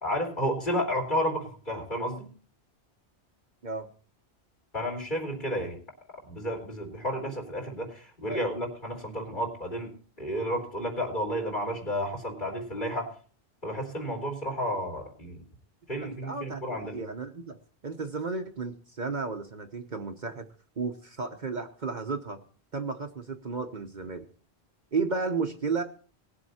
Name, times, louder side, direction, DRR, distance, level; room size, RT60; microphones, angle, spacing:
voice 1, 0.0-2.3 4.7-5.8 6.2-13.1 13.6-15.4 15.9-17.0, equal, 45° left, 0 dB, 4.1 m, -32 dB
voice 2, 16.2-17.6 17.8-20.4 20.8-22.4 22.7-24.3 24.9-25.8, right 4 dB, 45° right, 5 dB, 1.1 m, -33 dB
19.5 x 7.7 x 4.2 m, 0.40 s
omnidirectional pair, 1.1 m